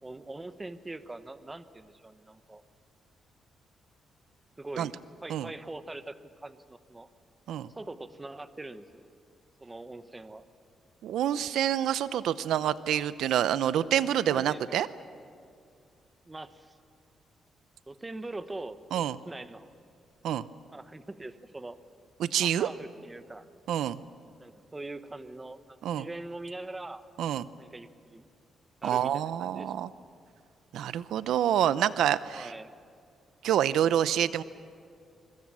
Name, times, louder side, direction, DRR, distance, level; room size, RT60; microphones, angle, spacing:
voice 1, 0.0-2.6 4.6-4.9 5.2-7.1 7.7-9.0 9.6-10.4 14.1-14.8 16.3-16.8 17.9-18.8 19.2-19.7 20.7-21.8 22.4-23.5 24.4-27.0 27.6-28.3 28.8-29.7 32.3-32.7, right 2 dB, 15° right, 11 dB, 1.0 m, -42 dB
voice 2, 11.0-14.9 18.9-19.2 20.2-20.4 22.2-22.7 23.7-24.0 25.8-26.1 27.2-27.5 28.8-29.9 30.7-32.5 33.4-34.4, right 10 dB, 90° right, 15 dB, 0.6 m, -27 dB
25.0 x 23.5 x 7.6 m, 2.3 s
cardioid pair, 140°, 0 cm